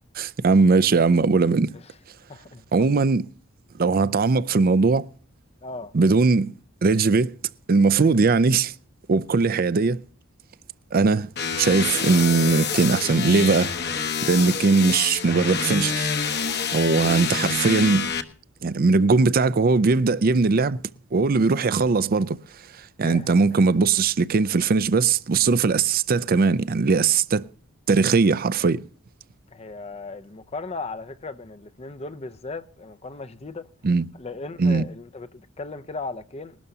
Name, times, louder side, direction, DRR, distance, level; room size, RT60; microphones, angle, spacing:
voice 1, 0.2-1.7 2.7-3.3 3.8-5.1 5.9-6.5 6.8-7.3 7.7-8.7 9.1-10.0 10.9-11.3 11.6-16.1 16.7-18.1 18.6-20.8 21.1-22.4 23.0-27.4 27.9-28.8 33.8-34.1 34.6-34.9, right 4 dB, 45° right, 0.5 m, -20 dB
voice 2, 2.3-3.1 5.6-5.9 23.0-23.6 29.5-33.7 34.2-36.6, left 3 dB, 30° left, 0.6 m, -37 dB
sound 1, 11.4-18.2, left 6 dB, 50° left, 1.1 m, -27 dB
20.5 x 12.5 x 2.8 m
head